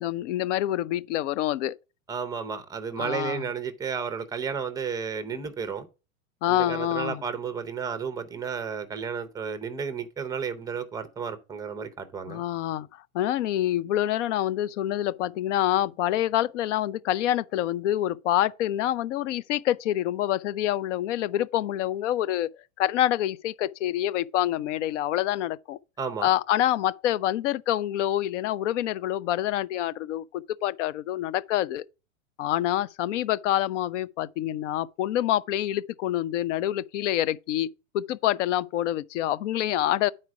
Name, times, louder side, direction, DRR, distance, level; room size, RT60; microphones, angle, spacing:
voice 1, 0.0-1.7 3.0-3.5 6.4-7.2 12.3-25.8 26.2-31.9 32.4-37.7 37.9-40.1, left 12 dB, 60° left, 0.6 m, -27 dB
voice 2, 2.1-5.9 6.5-12.4 26.0-26.3, right 6 dB, 10° right, 0.6 m, -32 dB
9.2 x 4.3 x 4.7 m
hypercardioid pair, 135°, 41 cm